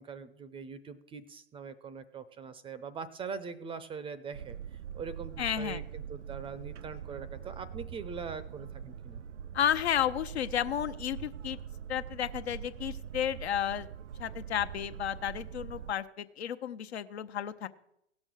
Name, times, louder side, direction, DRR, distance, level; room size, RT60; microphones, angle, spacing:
voice 1, 0.0-4.6 4.9-9.2, right 5 dB, 15° right, 15 dB, 0.6 m, -42 dB
Boat Water vehicle, 4.3-15.9, right 9 dB, 85° right, 0.5 m, -43 dB
voice 2, 5.4-5.8 9.5-11.6 11.9-13.9 14.2-17.7, left 10 dB, 65° left, 11 dB, 0.8 m, -32 dB
16.5 x 6.3 x 6.3 m, 0.78 s
figure-of-eight pair, 100°, 35 cm